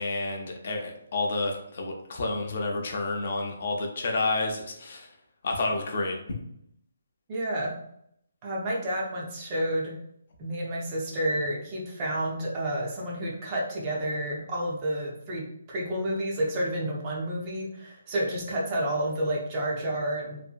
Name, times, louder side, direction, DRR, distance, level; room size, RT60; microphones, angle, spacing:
voice 1, 0.0-5.1 5.4-6.2, left 2 dB, 40° left, 2 dB, 0.5 m, -30 dB
voice 2, 7.3-7.7 8.4-9.9 10.4-20.4, right 1 dB, 20° right, -3 dB, 0.4 m, -30 dB
2.6 x 2.6 x 2.3 m, 0.72 s
hypercardioid pair, 175°, 0 cm